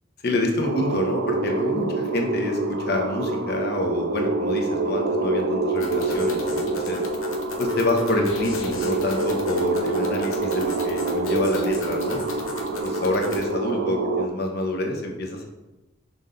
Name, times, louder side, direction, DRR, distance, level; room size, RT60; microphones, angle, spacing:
voice 1, 0.2-7.0 7.6-12.2 12.8-15.5, left 1 dB, 50° left, 2 dB, 0.9 m, -27 dB
sound 1, 0.6-14.3, right 2 dB, 80° right, 0.5 m, -26 dB
sound 2, 5.8-13.5, left 3 dB, 85° left, 0.8 m, -37 dB
6.3 x 3.9 x 3.8 m, 1.0 s
head